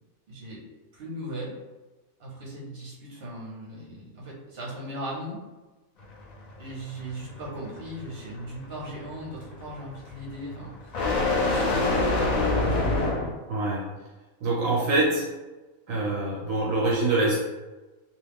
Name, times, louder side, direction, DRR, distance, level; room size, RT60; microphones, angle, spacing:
voice 1, 0.3-0.6 0.9-1.5 2.2-5.4 6.6-13.2, right 1 dB, 50° right, -5 dB, 1.1 m, -38 dB
sound 1, 6.0-13.3, left 2 dB, 85° left, 0.3 m, -27 dB
voice 2, 13.5-13.9 14.4-15.3 15.9-17.4, right 2 dB, 75° right, -4 dB, 1.0 m, -24 dB
2.7 x 2.3 x 3.4 m, 1.2 s
omnidirectional pair, 1.4 m